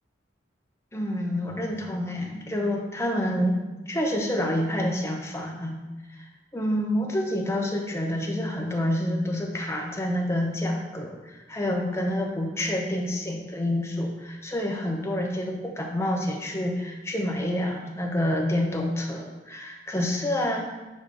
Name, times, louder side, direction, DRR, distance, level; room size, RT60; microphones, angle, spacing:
voice 1, 0.9-3.6 3.8-5.8 6.1-20.8, left 1 dB, 15° left, 0 dB, 0.7 m, -28 dB
7.3 x 2.9 x 4.8 m, 1.1 s
head